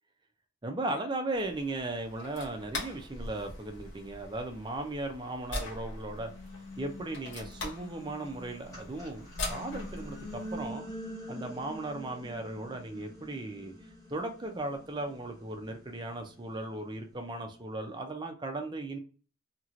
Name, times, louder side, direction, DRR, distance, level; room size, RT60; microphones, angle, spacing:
voice 1, 0.6-6.3 6.8-10.8 11.3-13.7 14.1-19.0, right 2 dB, 20° right, 0.5 m, -37 dB
sound 1, 1.3-10.7, left 2 dB, 55° left, 1.0 m, -42 dB
sound 2, 2.4-2.5 3.1-5.4 5.9-17.2, equal, 15° left, 0.9 m, -46 dB
2.9 x 2.9 x 2.5 m
head